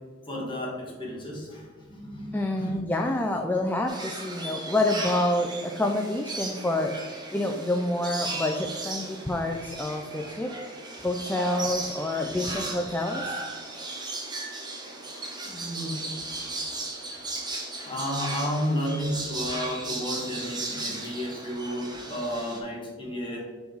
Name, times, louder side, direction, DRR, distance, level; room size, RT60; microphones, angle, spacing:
voice 1, 0.3-2.7 15.4-16.1 17.3-17.4 17.8-23.4, equal, 25° left, -4 dB, 1.7 m, -32 dB
voice 2, 2.3-7.0 7.3-10.6 11.0-13.4 13.7-13.9, left 1 dB, 10° left, 3 dB, 0.3 m, -28 dB
sound 1, 3.9-22.6, right 2 dB, 20° right, 0.9 m, -36 dB
5.3 x 4.7 x 3.9 m, 1.5 s
head